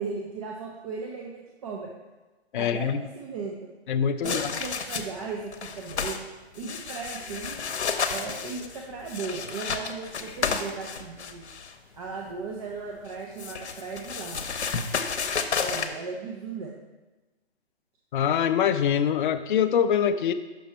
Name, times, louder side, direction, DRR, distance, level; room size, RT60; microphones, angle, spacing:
voice 1, 0.0-1.9 2.5-3.7 4.2-6.2 6.5-7.6 8.1-11.4 11.9-14.6 15.6-16.7, right 4 dB, 35° right, -1 dB, 0.7 m, -36 dB
voice 2, 2.5-3.0 3.9-4.5 18.1-20.3, left 8 dB, 50° left, 9 dB, 0.4 m, -24 dB
sound 1, 4.2-5.2 5.5-6.2 6.5-11.7 13.0-15.9, left 5 dB, 90° left, 0.8 m, -31 dB
6.0 x 5.6 x 4.3 m, 1.2 s
hypercardioid pair, 145°, 33 cm